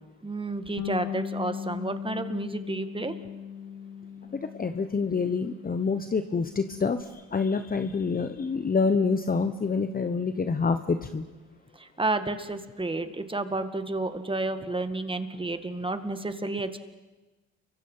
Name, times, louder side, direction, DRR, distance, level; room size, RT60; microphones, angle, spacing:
voice 1, 0.2-3.1 11.8-16.8, right 2 dB, 15° right, 9 dB, 2.0 m, -31 dB
Bass guitar, 0.8-7.0, left 8 dB, 75° left, 1.6 m, -38 dB
voice 2, 4.5-11.2, left 4 dB, 30° left, 9 dB, 1.1 m, -27 dB
29.5 x 24.0 x 5.7 m, 1.1 s
cardioid pair, 90°, 30 cm